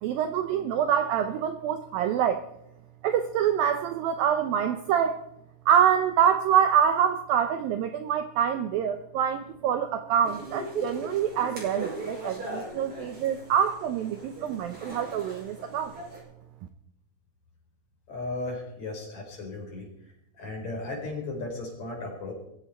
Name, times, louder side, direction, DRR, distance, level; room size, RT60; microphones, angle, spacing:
voice 1, 0.0-2.4 3.0-5.2 5.7-15.9, right 8 dB, 75° right, 8 dB, 2.2 m, -25 dB
sound 1, 10.2-16.2, right 2 dB, 30° right, 6.4 m, -39 dB
voice 2, 18.1-19.9 20.4-22.3, left 2 dB, 40° left, 0 dB, 5.7 m, -35 dB
21.5 x 15.0 x 4.4 m, 0.79 s
omnidirectional pair, 4.9 m